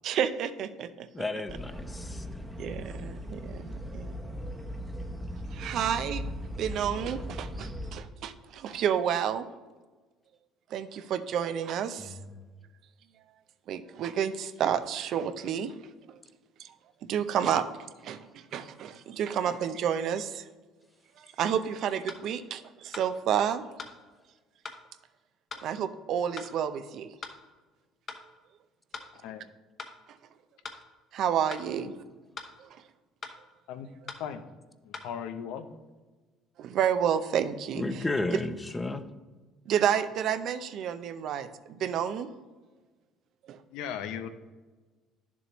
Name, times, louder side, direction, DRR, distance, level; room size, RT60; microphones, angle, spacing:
voice 1, 0.0-1.1 2.6-4.2 5.5-6.2 6.6-9.4 10.7-12.1 13.7-15.7 16.1-16.2 16.6-16.7 17.0-17.6 18.0-20.5 21.2-23.7 25.6-27.1 31.1-31.9 32.7-32.8 36.6-38.0 38.3-38.4 39.7-42.3 43.5-43.6, right 8 dB, 60° right, 11 dB, 0.5 m, -30 dB
voice 2, 1.1-2.3 12.0-12.4 37.7-39.1, left 2 dB, 15° left, 11 dB, 0.6 m, -33 dB
sound 1, 1.5-7.9, equal, 5° right, 0.9 m, -38 dB
sound 2, 22.1-22.2 22.9-23.1 23.8-24.0 24.7-24.8 25.5-25.7 26.4-26.5 27.2-27.4 28.1-28.2 28.9-29.1 29.8-30.0 30.6-30.8 31.5-31.7 32.4-32.5 33.2-33.4 34.1-34.2 34.9-35.1, left 4 dB, 40° left, 1.0 m, -41 dB
voice 3, 29.1-29.5 31.8-31.9 33.7-33.9 34.2-34.5 34.8-35.7 43.7-44.3, left 8 dB, 80° left, 9 dB, 0.6 m, -37 dB
10.5 x 7.0 x 3.0 m, 1.3 s
supercardioid pair, 100°, 0 cm